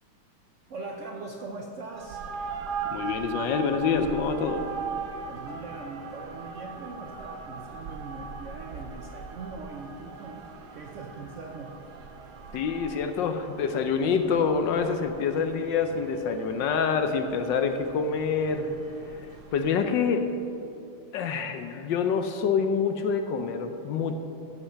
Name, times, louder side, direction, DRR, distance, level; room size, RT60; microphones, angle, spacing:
voice 1, 0.7-2.3 5.3-11.7, right 3 dB, 80° right, 1 dB, 0.6 m, -41 dB
sound 1, 1.9-19.8, right 5 dB, 60° right, 1.2 m, -40 dB
voice 2, 2.9-4.6 12.5-18.7 19.5-20.3 21.1-24.1, left 6 dB, 70° left, 7 dB, 1.2 m, -26 dB
14.0 x 5.7 x 6.7 m, 2.7 s
omnidirectional pair, 2.3 m